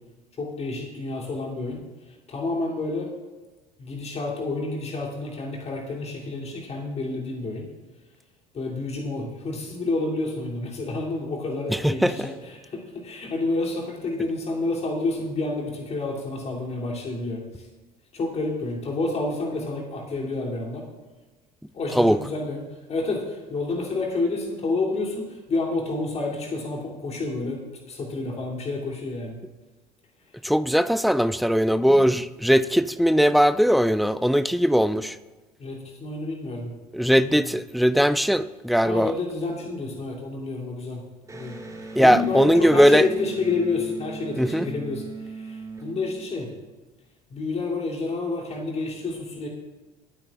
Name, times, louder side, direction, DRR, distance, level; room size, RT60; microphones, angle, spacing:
voice 1, 0.4-1.8 2.1-3.1 3.8-7.7 8.5-17.7 18.1-20.9 21.7-22.6 22.9-29.4 31.7-32.0 35.6-36.7 37.3-37.5 38.8-41.0 41.3-41.6 42.0-46.5 47.3-49.5, left 3 dB, 30° left, -2 dB, 3.1 m, -29 dB
voice 2, 11.8-12.3 22.0-22.2 30.4-35.2 36.9-39.1 42.0-43.0 44.4-44.7, equal, ahead, 15 dB, 0.4 m, -19 dB
Electric guitar, 41.2-46.7, right 4 dB, 15° right, 2.2 m, -38 dB
23.5 x 9.0 x 2.5 m, 1.2 s
figure-of-eight pair, 60°, 20 cm